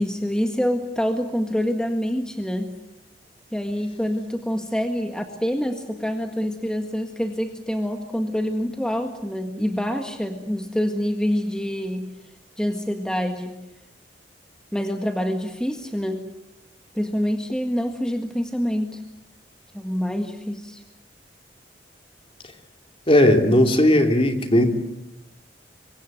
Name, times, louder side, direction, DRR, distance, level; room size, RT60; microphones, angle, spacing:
voice 1, 0.0-2.7 3.5-12.1 12.6-13.6 14.7-16.3 16.9-19.0 19.7-20.8, equal, 5° left, 5 dB, 1.7 m, -26 dB
voice 2, 23.1-24.7, left 1 dB, 30° left, 5 dB, 2.9 m, -16 dB
27.0 x 24.0 x 7.9 m, 0.88 s
head